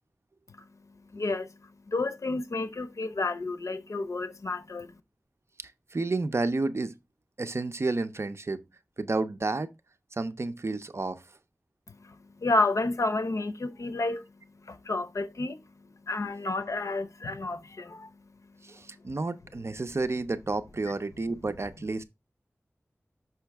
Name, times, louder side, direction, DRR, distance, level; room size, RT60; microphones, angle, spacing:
voice 1, 0.5-5.0 11.9-19.0, left 2 dB, 85° left, 0.7 m, -31 dB
voice 2, 5.9-6.9 7.4-8.6 9.0-9.7 10.1-11.2 18.6-22.0, right 3 dB, 60° right, 0.6 m, -30 dB
6.2 x 5.7 x 3.4 m
wide cardioid pair, 65°, 5 cm